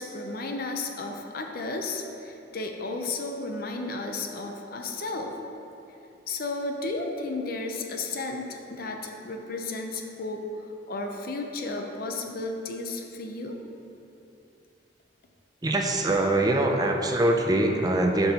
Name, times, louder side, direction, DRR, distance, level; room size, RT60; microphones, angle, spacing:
voice 1, 0.0-5.4 6.3-10.5 10.9-13.6, left 3 dB, 55° left, 3 dB, 0.6 m, -33 dB
voice 2, 15.6-18.3, right 1 dB, 20° right, 2 dB, 0.5 m, -23 dB
11.5 x 5.4 x 2.9 m, 2.8 s
head